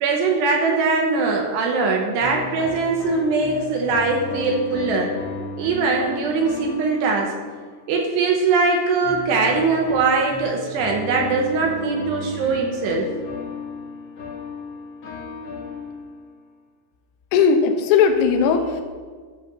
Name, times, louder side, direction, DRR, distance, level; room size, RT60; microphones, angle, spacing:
voice 1, 0.0-5.1 5.6-7.3 7.9-13.1, right 4 dB, 70° right, 1 dB, 2.7 m, -21 dB
sound 1, 2.2-8.0 9.0-16.4, left 3 dB, 60° left, 1.6 m, -34 dB
voice 2, 17.3-18.8, left 6 dB, 85° left, 5 dB, 2.3 m, -17 dB
13.0 x 5.0 x 6.9 m, 1.5 s
omnidirectional pair, 5.8 m